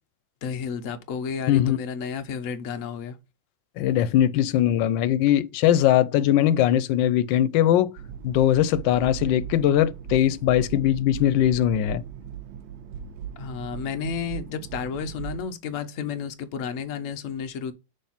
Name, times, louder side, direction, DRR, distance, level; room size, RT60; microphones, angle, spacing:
voice 1, 0.4-3.2 13.4-17.7, left 6 dB, 65° left, 0.8 m, -32 dB
voice 2, 1.5-1.8 3.8-7.9 8.2-12.0, left 11 dB, 85° left, 1.3 m, -21 dB
sound 1, 8.0-15.4, right 9 dB, 80° right, 1.3 m, -38 dB
6.5 x 3.2 x 5.7 m
omnidirectional pair, 2.0 m